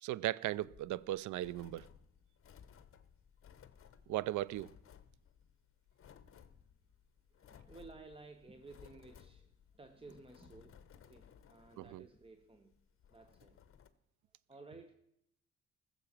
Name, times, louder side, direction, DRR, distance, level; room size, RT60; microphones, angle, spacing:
voice 1, 0.0-1.9 4.1-4.7 11.8-12.0, right 14 dB, 75° right, 0.5 m, -37 dB
sound 1, 0.5-13.9, left 8 dB, 45° left, 1.0 m, -61 dB
voice 2, 7.3-12.8 13.1-13.8 14.3-14.9, right 3 dB, 20° right, 1.0 m, -56 dB
15.0 x 7.1 x 7.3 m
cardioid pair, 90°, 30 cm